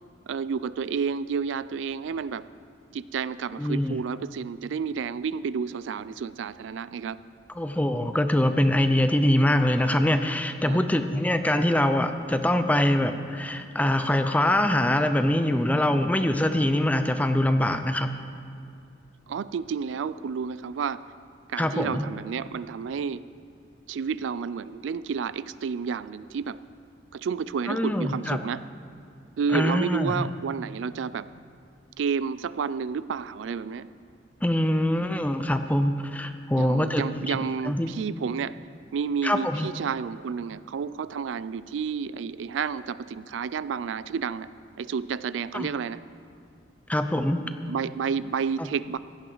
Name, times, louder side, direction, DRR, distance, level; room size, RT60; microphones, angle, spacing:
voice 1, 0.3-2.5 2.9-7.2 10.7-10.8 19.3-21.0 21.5-23.2 23.9-26.6 27.1-28.6 29.4-31.3 32.0-33.9 36.6-38.6 38.9-44.5 44.8-46.0 47.7-49.0, right 6 dB, 85° right, 16 dB, 0.4 m, -30 dB
voice 2, 3.6-4.0 7.6-18.1 21.6-22.0 27.7-28.4 29.5-30.3 34.4-37.9 39.2-39.7 45.5-45.7 46.9-47.4, left 1 dB, 10° left, 8 dB, 0.5 m, -24 dB
16.5 x 12.0 x 4.0 m, 2.4 s
head